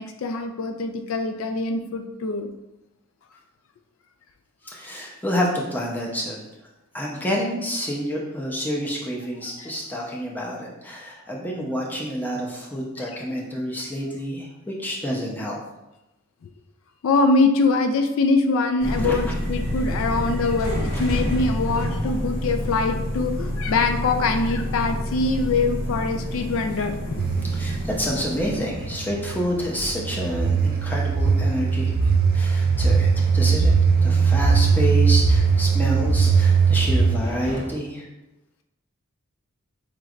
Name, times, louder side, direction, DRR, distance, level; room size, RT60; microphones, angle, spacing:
voice 1, 0.0-2.5 9.6-9.7 17.0-27.3, left 3 dB, 70° left, 6 dB, 0.3 m, -23 dB
voice 2, 4.7-6.4 6.9-15.6 19.0-19.3 27.5-33.7 34.0-38.1, equal, 10° left, -3 dB, 0.6 m, -28 dB
sound 1, 18.8-37.7, equal, 50° left, 1.0 m, -30 dB
sound 2, 27.2-37.2, right 5 dB, 45° right, 0.3 m, -20 dB
5.0 x 3.1 x 2.4 m, 0.96 s
head